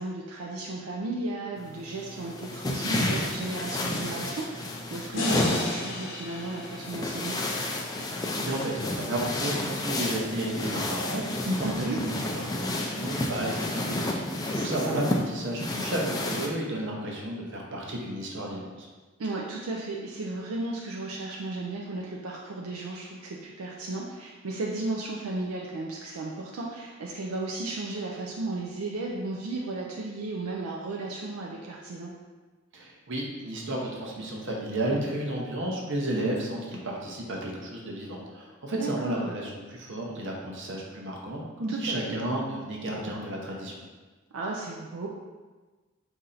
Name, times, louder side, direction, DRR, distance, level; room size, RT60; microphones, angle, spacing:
voice 1, 0.0-7.4 11.6-12.0 14.5-15.0 19.2-32.1 38.7-39.4 41.7-42.2 44.3-45.1, right 2 dB, 85° right, -2 dB, 0.5 m, -34 dB
sound 1, 1.6-16.5, left 1 dB, 20° left, 0.3 m, -31 dB
sound 2, 5.1-8.4, left 2 dB, 70° left, 0.9 m, -34 dB
voice 2, 8.0-18.9 32.7-43.7, right 1 dB, 60° right, -1 dB, 0.8 m, -32 dB
4.2 x 2.7 x 3.8 m, 1.3 s
head